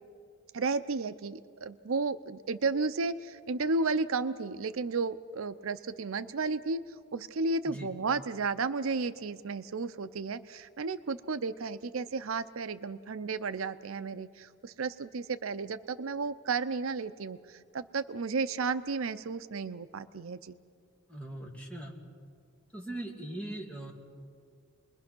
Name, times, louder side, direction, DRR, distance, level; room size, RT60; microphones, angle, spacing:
voice 1, 0.5-6.8 7.1-20.6, right 4 dB, 80° right, 12 dB, 0.6 m, -33 dB
voice 2, 21.1-21.9 22.7-23.9, right 1 dB, 5° left, -1 dB, 2.7 m, -40 dB
29.5 x 21.5 x 6.1 m, 2.2 s
head